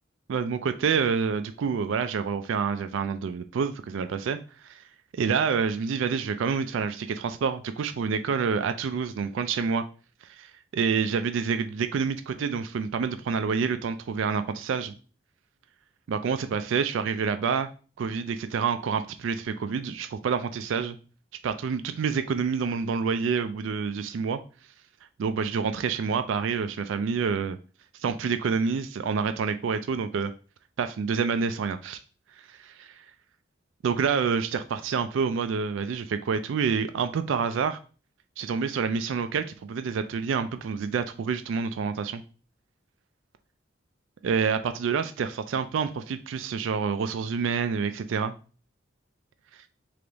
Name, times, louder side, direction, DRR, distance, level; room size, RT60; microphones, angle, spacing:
voice 1, 0.3-4.4 4.6-4.8 5.1-9.8 10.2-14.9 16.1-17.7 18.0-21.0 21.4-24.4 25.2-27.6 28.0-30.3 30.8-32.0 32.5-33.0 33.8-37.8 38.4-42.2 44.2-48.3, right 6 dB, 75° right, 0.3 m, -28 dB
3.4 x 3.4 x 3.9 m
head